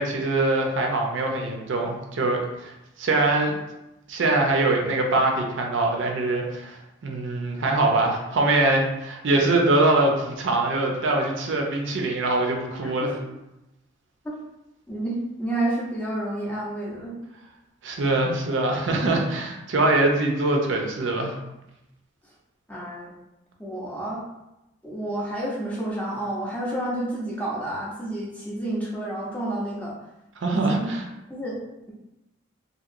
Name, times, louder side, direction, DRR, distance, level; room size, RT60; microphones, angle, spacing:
voice 1, 0.0-2.7 3.0-3.5 4.1-13.2 17.8-21.3 30.4-31.1, right 2 dB, 65° right, 1 dB, 0.5 m, -23 dB
voice 2, 14.9-17.1 22.7-23.1 23.6-24.2 24.8-29.9 30.5-30.9 31.3-31.6, right 1 dB, 5° left, -5 dB, 0.5 m, -30 dB
2.9 x 2.7 x 2.5 m, 0.94 s
head